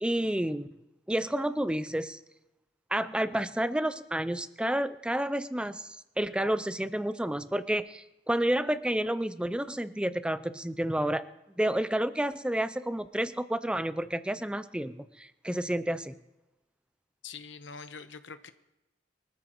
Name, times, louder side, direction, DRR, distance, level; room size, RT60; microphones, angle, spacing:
voice 1, 0.0-0.7 1.1-2.2 2.9-11.2 11.6-16.1, right 1 dB, 5° right, 13 dB, 0.5 m, -30 dB
voice 2, 17.2-18.5, left 5 dB, 85° left, 10 dB, 1.0 m, -44 dB
24.5 x 13.5 x 3.1 m, 0.99 s
head